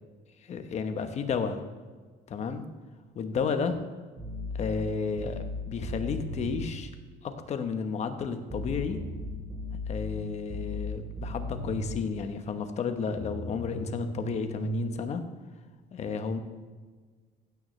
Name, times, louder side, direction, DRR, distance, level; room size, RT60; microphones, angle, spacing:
voice 1, 0.4-1.6 2.3-2.6 3.1-3.8 4.5-6.9 7.2-9.0 9.9-15.2 15.9-16.4, left 5 dB, 40° left, 8 dB, 1.1 m, -32 dB
sound 1, 4.2-6.8 8.5-12.1 13.2-14.8, left 1 dB, 25° right, 3.6 m, -36 dB
15.5 x 9.3 x 3.2 m, 1.4 s
cardioid pair, 135°, 18 cm